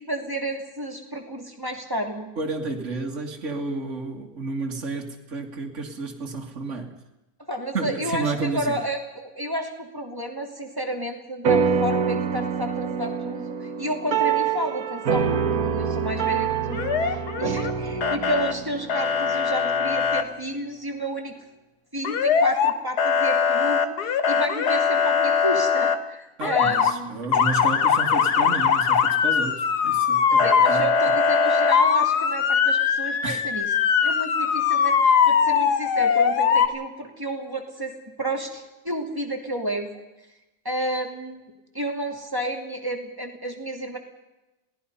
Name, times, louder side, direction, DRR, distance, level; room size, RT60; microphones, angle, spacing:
voice 1, 0.0-2.3 7.5-21.3 21.9-27.3 30.4-33.7 34.0-37.9 38.2-39.9 40.6-44.0, right 1 dB, 15° right, 2 dB, 2.9 m, -31 dB
voice 2, 2.4-6.9 7.7-8.8 26.4-30.9 33.2-33.4, right 3 dB, 50° right, 0 dB, 2.3 m, -31 dB
sound 1, 11.4-20.2, right 7 dB, 65° right, 1.7 m, -26 dB
Motor vehicle (road) / Siren, 16.7-17.7 18.0-18.5 18.9-20.2 22.0-22.7 23.0-26.0 26.4-26.9 27.3-36.7, left 6 dB, 80° left, 1.8 m, -21 dB
27.5 x 18.5 x 5.6 m, 1.0 s
omnidirectional pair, 1.7 m